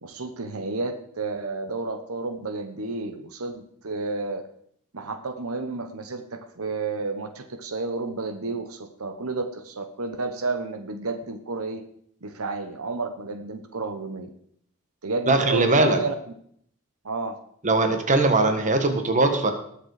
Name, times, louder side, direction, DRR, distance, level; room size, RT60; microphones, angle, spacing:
voice 1, 0.0-4.4 4.9-11.8 12.2-14.3 15.0-16.1 17.0-17.3, right 3 dB, 80° right, 8 dB, 1.0 m, -31 dB
voice 2, 15.3-16.0 17.6-19.5, right 2 dB, 35° right, 6 dB, 1.7 m, -20 dB
19.5 x 7.1 x 4.9 m, 0.66 s
head